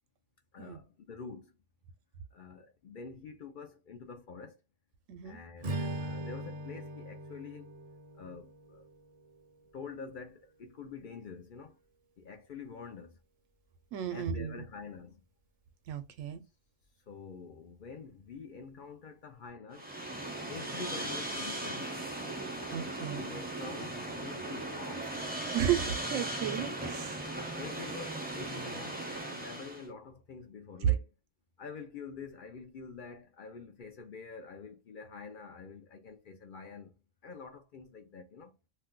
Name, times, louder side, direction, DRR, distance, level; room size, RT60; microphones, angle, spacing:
voice 1, 0.5-1.5 2.3-4.6 5.2-7.7 8.2-8.8 9.7-11.8 12.2-13.2 14.1-15.2 17.1-19.9 20.5-21.9 23.2-25.1 27.6-31.1 31.6-36.9 37.2-38.6, left 5 dB, 60° left, 0.5 m, -46 dB
voice 2, 5.1-5.4 13.9-14.6 15.9-16.4 22.7-23.3 25.5-27.3 30.8-30.9, right 10 dB, 90° right, 1.0 m, -33 dB
Strum, 5.6-10.0, right 1 dB, 50° right, 0.6 m, -41 dB
sound 1, 19.7-29.9, right 1 dB, 15° right, 0.4 m, -38 dB
2.6 x 2.2 x 3.6 m
omnidirectional pair, 1.3 m